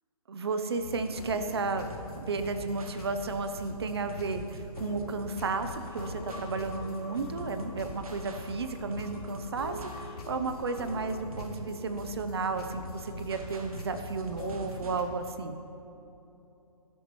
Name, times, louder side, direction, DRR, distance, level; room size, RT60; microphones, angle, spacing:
voice 1, 0.3-1.9 2.2-15.6, right 4 dB, 40° right, 8 dB, 0.7 m, -33 dB
sound 1, 0.8-15.0, left 2 dB, 75° left, 2.7 m, -43 dB
sound 2, 1.0-15.0, right 2 dB, 65° right, 1.5 m, -47 dB
sound 3, 5.7-11.0, left 3 dB, 15° right, 2.3 m, -50 dB
17.0 x 11.5 x 3.1 m, 3.0 s
hypercardioid pair, 175°, 19 cm